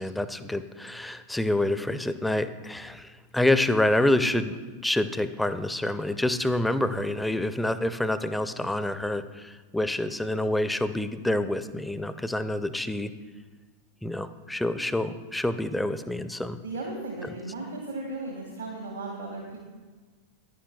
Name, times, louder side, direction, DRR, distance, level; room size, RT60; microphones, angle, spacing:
voice 1, 0.0-4.6 4.8-13.1 14.0-16.6, left 1 dB, 5° left, 12 dB, 0.4 m, -27 dB
voice 2, 16.6-19.6, right 2 dB, 75° right, -2 dB, 1.5 m, -36 dB
10.0 x 10.0 x 2.2 m, 1.4 s
figure-of-eight pair, 90°, 0 cm